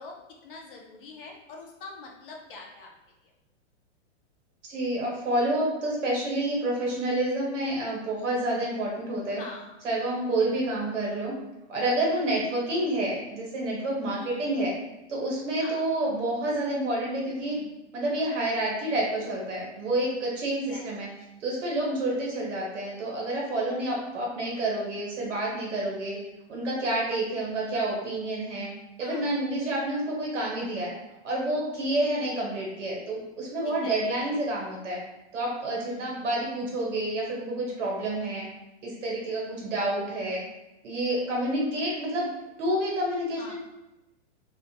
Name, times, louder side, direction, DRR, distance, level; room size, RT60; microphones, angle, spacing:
voice 1, 0.0-2.9 9.4-9.7 10.4-10.5 14.2-14.8 15.6-15.8 17.4-17.7 20.7-20.9 29.0-29.4 31.9-32.4 33.6-34.0 35.9-36.2 43.4-43.5, left 3 dB, 50° left, 0 dB, 0.5 m, -44 dB
voice 2, 4.6-9.4 9.8-11.3 11.7-14.7 15.1-17.6 17.9-21.1 21.4-26.2 26.5-28.7 29.0-30.9 31.2-35.0 35.3-38.4 38.8-40.4 40.8-42.3 42.6-43.5, right 1 dB, 80° right, -3 dB, 1.1 m, -29 dB
2.4 x 2.0 x 2.8 m, 0.95 s
hypercardioid pair, 170°, 36 cm